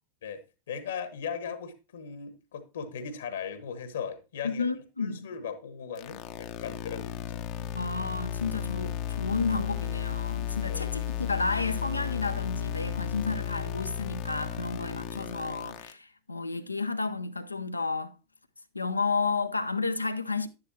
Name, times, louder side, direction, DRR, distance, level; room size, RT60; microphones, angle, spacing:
voice 1, 0.7-4.6 5.0-7.4 10.7-10.8, left 7 dB, 65° left, 1.3 m, -38 dB
voice 2, 4.4-5.3 7.6-18.1 18.7-20.5, left 4 dB, 80° left, 0.7 m, -31 dB
sound 1, 6.0-15.9, left 11 dB, 40° left, 0.8 m, -34 dB
11.0 x 10.5 x 2.8 m
figure-of-eight pair, 90°, 0 cm